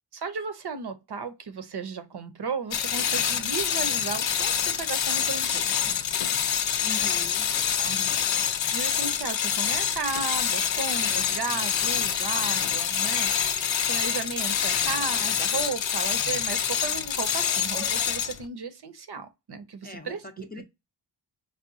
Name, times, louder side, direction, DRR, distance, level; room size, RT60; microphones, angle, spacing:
voice 1, 0.1-5.9 7.8-8.1 8.7-13.3 13.8-20.2 20.6-20.7, right 5 dB, 60° right, 0.7 m, -34 dB
sound 1, 2.7-18.4, left 8 dB, 80° left, 0.6 m, -26 dB
voice 2, 6.8-7.4 19.8-20.6, left 3 dB, 20° left, 0.6 m, -41 dB
4.8 x 2.2 x 2.5 m
cardioid pair, 60°, 45 cm